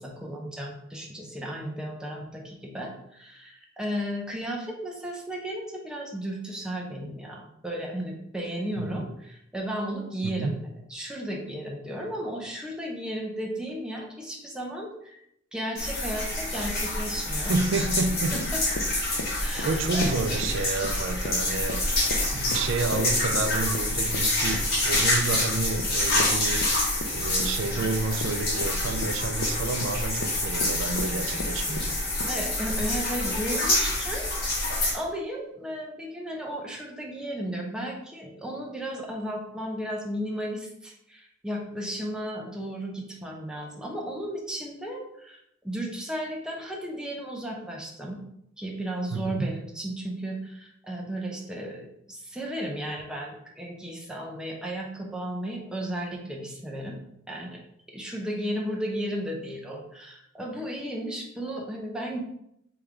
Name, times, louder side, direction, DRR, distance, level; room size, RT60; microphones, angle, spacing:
voice 1, 0.0-15.2 15.5-17.9 18.3-18.6 19.4-20.4 32.3-34.3 34.9-48.2 48.6-57.0 57.3-57.6 57.9-62.2, equal, 5° right, -1 dB, 0.6 m, -34 dB
voice 2, 10.2-10.5 17.5-18.3 19.6-21.8 22.3-26.6 27.1-31.9 49.1-49.5, right 3 dB, 80° right, 8 dB, 0.4 m, -29 dB
sound 1, 15.8-34.9, left 1 dB, 55° left, 1.6 m, -27 dB
Run, 18.3-32.4, left 2 dB, 85° left, 0.5 m, -38 dB
3.4 x 3.3 x 3.6 m, 0.77 s
head